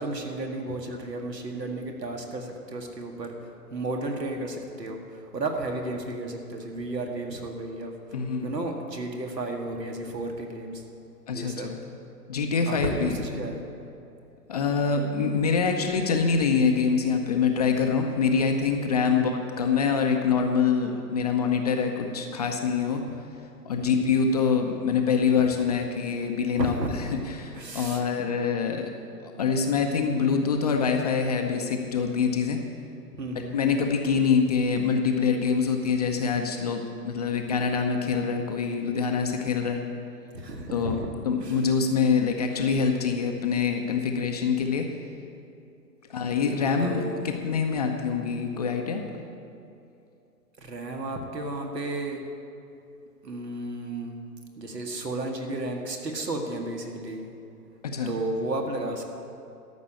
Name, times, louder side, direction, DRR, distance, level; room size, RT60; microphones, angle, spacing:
voice 1, 0.0-7.9 8.4-10.8 11.3-11.7 12.7-13.7 19.1-19.4 23.7-24.2 25.3-25.5 26.6-26.9 27.5-28.1 33.2-33.6 40.3-41.1 41.4-41.7 46.8-47.3 50.6-52.2 53.2-54.2 54.6-57.3 58.1-59.0, right 2 dB, 80° right, 2 dB, 2.0 m, -33 dB
voice 2, 8.1-8.5 11.3-11.8 12.3-13.4 14.5-23.0 23.7-26.7 27.3-28.9 29.4-32.6 33.5-39.8 40.7-41.0 41.2-44.8 46.1-49.0 57.8-58.1, left 5 dB, 25° left, 3 dB, 0.6 m, -25 dB
13.5 x 6.1 x 8.6 m, 2.7 s
figure-of-eight pair, 130°, 49 cm